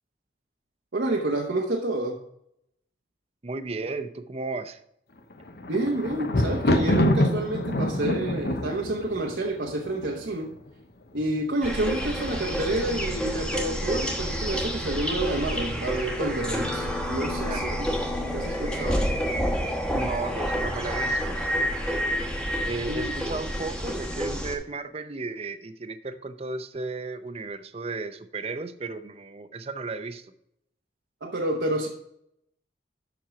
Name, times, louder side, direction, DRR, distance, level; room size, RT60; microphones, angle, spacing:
voice 1, 0.9-2.2 5.7-10.5 11.1-17.7 18.3-19.0 22.9-23.1 31.2-31.9, right 2 dB, 85° right, -1 dB, 1.0 m, -29 dB
voice 2, 3.4-4.8 17.4-18.2 19.9-21.4 22.7-30.3, right 3 dB, 35° right, 11 dB, 0.6 m, -34 dB
Thunder, 5.3-10.4 11.2-11.7 11.9-12.0, left 1 dB, 65° left, 0.8 m, -26 dB
sound 1, 11.6-24.6, equal, 5° left, 1.0 m, -29 dB
7.3 x 6.1 x 5.0 m, 0.76 s
head